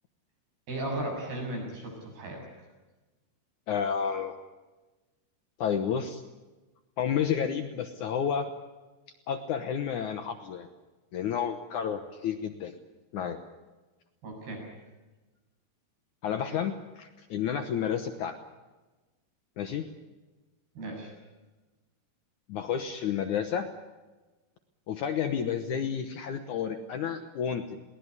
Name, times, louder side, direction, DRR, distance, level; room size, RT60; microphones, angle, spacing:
voice 1, 0.7-2.4 14.2-14.6 20.8-21.1, right 1 dB, 70° right, 0 dB, 9.2 m, -35 dB
voice 2, 3.7-4.3 5.6-6.2 7.0-8.5 9.3-10.7 11.1-12.7 13.1-13.4 16.2-18.4 19.6-19.8 22.5-23.7 24.9-27.8, left 8 dB, 70° left, 8 dB, 2.0 m, -31 dB
21.5 x 18.0 x 9.7 m, 1.2 s
omnidirectional pair, 4.6 m